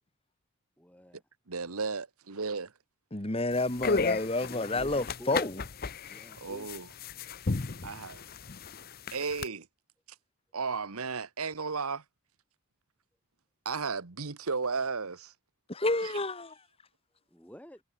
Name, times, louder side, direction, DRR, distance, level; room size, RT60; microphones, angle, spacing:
voice 1, 0.8-1.2 4.4-5.4 6.1-6.7 17.3-17.8, equal, 5° left, 6.5 m, -49 dB
voice 2, 1.5-2.7 6.4-6.9 7.8-8.2 9.1-9.7 10.5-12.0 13.6-15.3 16.0-16.1, right 4 dB, 85° right, 1.3 m, -34 dB
voice 3, 3.1-5.6 15.7-16.5, left 2 dB, 25° left, 1.6 m, -30 dB
sound 1, 3.5-9.5, left 4 dB, 45° left, 0.7 m, -34 dB
head